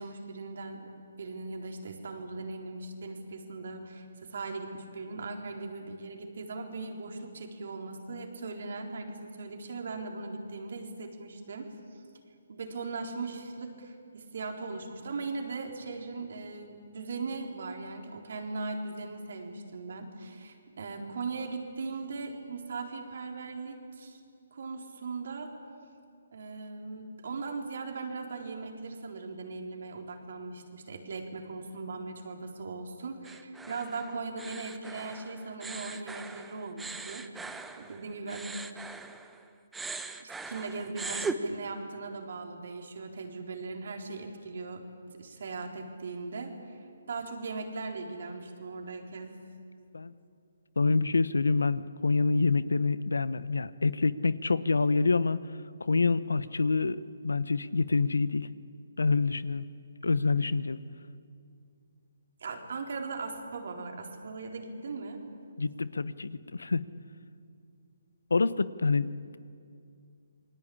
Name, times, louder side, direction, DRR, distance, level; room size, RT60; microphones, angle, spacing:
voice 1, 0.0-11.7 12.5-24.2 24.5-25.5 26.3-38.5 40.2-44.8 45.1-46.8 47.1-49.4 62.4-65.2, right 3 dB, 65° right, 2 dB, 4.0 m, -39 dB
sound 1, 33.2-39.4 39.7-41.4, right 3 dB, 5° right, 1.0 m, -40 dB
voice 2, 50.8-55.4 55.8-58.5 59.0-59.6 60.0-60.8 65.6-66.8 68.3-69.4, left 4 dB, 85° left, 17 dB, 0.9 m, -27 dB
28.0 x 20.5 x 8.7 m, 2.4 s
hypercardioid pair, 150°, 0 cm